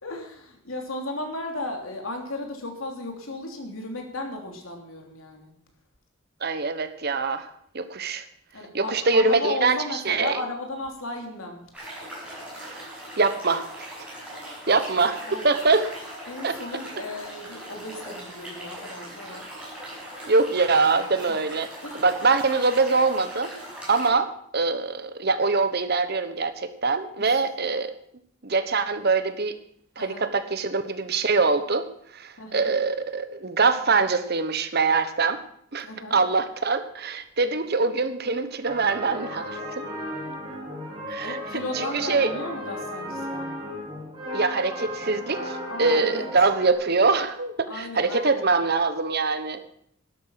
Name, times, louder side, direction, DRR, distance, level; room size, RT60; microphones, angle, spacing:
voice 1, 0.0-5.5 8.5-11.6 15.3-15.5 16.3-19.5 21.8-22.0 27.2-27.4 30.0-30.3 32.4-32.7 35.8-36.2 41.2-43.5 45.7-46.3 47.7-48.5, left 2 dB, 80° left, 3 dB, 3.1 m, -35 dB
voice 2, 6.4-7.5 7.7-8.2 8.7-10.4 12.6-12.9 13.2-13.9 14.7-15.9 16.4-16.6 20.3-21.7 21.9-23.5 23.9-24.3 24.5-27.9 28.4-29.6 30.0-31.9 32.1-35.4 35.7-39.8 41.1-41.4 41.7-42.3 44.3-49.6, right 4 dB, 50° right, 11 dB, 1.1 m, -23 dB
sound 1, 11.7-24.1, right 1 dB, 5° right, 6.3 m, -40 dB
sound 2, 38.6-46.7, equal, 25° right, 5.4 m, -35 dB
12.0 x 12.0 x 5.8 m, 0.67 s
head